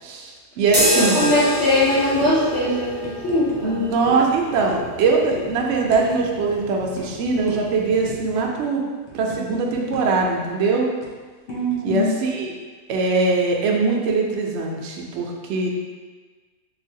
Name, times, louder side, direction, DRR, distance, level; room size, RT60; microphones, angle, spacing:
voice 1, 0.0-1.3 3.6-8.8 9.1-10.9 11.8-12.5 12.9-15.7, right 4 dB, 65° right, 0 dB, 0.7 m, -22 dB
sound 1, 0.7-8.4, equal, 15° right, 0.4 m, -28 dB
sound 2, 0.8-1.0 1.4-1.5 1.7-1.9 2.2-2.3 3.0-3.6 4.1-4.3 4.7-5.0 5.3-5.5 5.9-6.1 6.3-6.5 7.0-7.1 7.5-7.6 8.1-8.4 8.8-10.2 10.5-10.6 11.0-12.0, left 2 dB, 85° left, 1.2 m, -35 dB
voice 2, 0.9-3.8 11.5-12.1, left 1 dB, 55° left, -10 dB, 0.9 m, -21 dB
3.8 x 2.5 x 2.7 m, 1.4 s
omnidirectional pair, 1.5 m